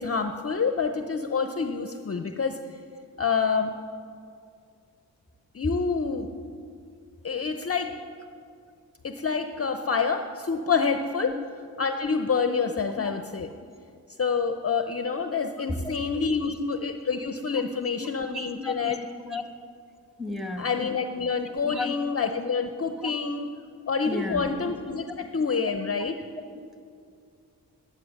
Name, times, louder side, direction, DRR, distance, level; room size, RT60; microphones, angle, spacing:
voice 1, 0.0-2.6 3.2-3.7 5.5-6.3 7.2-7.9 9.0-11.4 11.8-13.5 14.2-19.0 20.6-23.5 23.9-26.2, left 5 dB, 35° left, 7 dB, 0.7 m, -27 dB
voice 2, 15.5-16.0 16.5-16.6 17.6-17.7 18.0-19.4 20.2-20.7 21.3-21.4 21.6-21.9 23.0-23.1 24.1-24.5 26.4-26.5, left 2 dB, ahead, 5 dB, 1.6 m, -34 dB
11.0 x 9.7 x 6.5 m, 2.4 s
cardioid pair, 50°, 39 cm